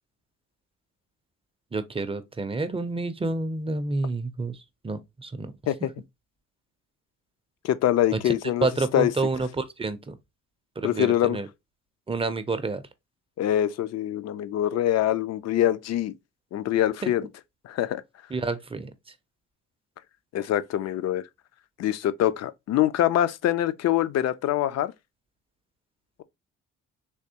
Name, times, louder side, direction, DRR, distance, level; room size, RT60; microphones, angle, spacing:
voice 1, 1.7-4.6 4.8-5.5 8.1-8.3 8.6-10.1 10.8-11.5 12.1-12.8 17.0-17.1 18.3-18.9, right 3 dB, 20° right, 0.4 m, -29 dB
voice 2, 7.6-8.7 8.9-9.1 10.8-11.4 13.4-16.1 16.5-17.2 17.6-18.0 20.3-21.2 21.8-24.9, left 12 dB, 60° left, 0.4 m, -24 dB
3.5 x 2.9 x 2.7 m
cardioid pair, 90°, 30 cm